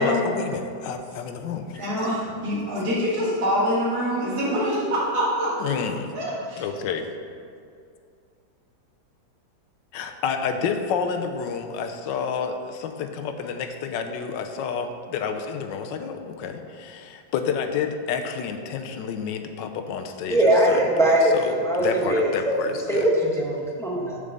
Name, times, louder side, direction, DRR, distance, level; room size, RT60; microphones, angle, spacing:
voice 1, 0.0-1.8 5.6-6.0 6.6-7.1 9.9-23.1, left 6 dB, 75° left, 6 dB, 1.3 m, -29 dB
voice 2, 1.8-5.8 6.1-6.7, equal, 55° right, -8 dB, 2.2 m, -25 dB
voice 3, 20.3-22.5 22.9-24.2, right 1 dB, ahead, -3 dB, 0.9 m, -21 dB
6.8 x 5.2 x 6.6 m, 2.3 s
omnidirectional pair, 2.0 m